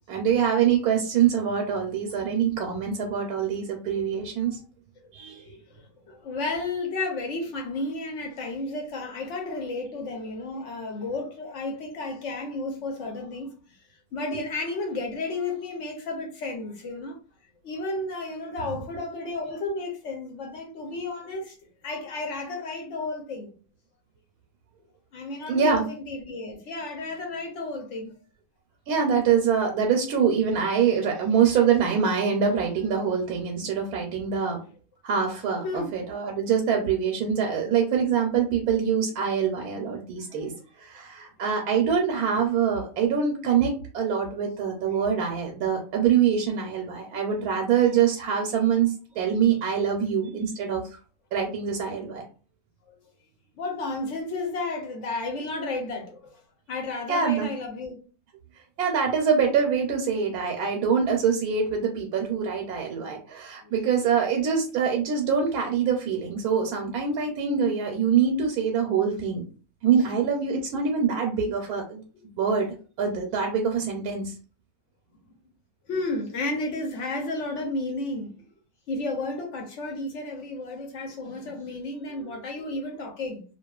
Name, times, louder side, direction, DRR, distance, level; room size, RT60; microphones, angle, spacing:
voice 1, 0.1-4.6 5.1-5.4 25.5-25.9 28.9-34.6 35.0-40.5 40.8-50.8 51.3-52.3 57.1-57.5 58.8-69.5 69.8-72.0 72.4-72.7 73.0-74.3 82.2-82.3, right 7 dB, 85° right, 1.1 m, -24 dB
voice 2, 5.4-13.6 14.1-17.2 17.6-21.5 21.8-23.5 25.1-28.1 35.6-35.9 53.6-56.4 56.7-58.0 63.6-63.7 75.9-78.3 78.9-83.4, left 2 dB, 65° left, 0.8 m, -32 dB
2.5 x 2.3 x 2.2 m
omnidirectional pair, 1.6 m